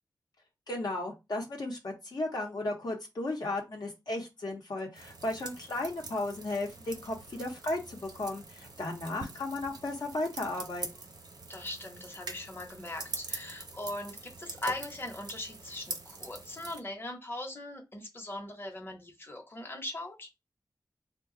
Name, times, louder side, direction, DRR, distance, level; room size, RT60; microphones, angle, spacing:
voice 1, 0.7-11.1, left 2 dB, 70° left, 0 dB, 0.8 m, -35 dB
sound 1, 4.9-16.8, right 3 dB, 80° right, 0.7 m, -44 dB
voice 2, 11.5-20.3, left 1 dB, 30° left, 2 dB, 0.8 m, -40 dB
2.4 x 2.2 x 3.7 m, 0.23 s
wide cardioid pair, 75°, 7 cm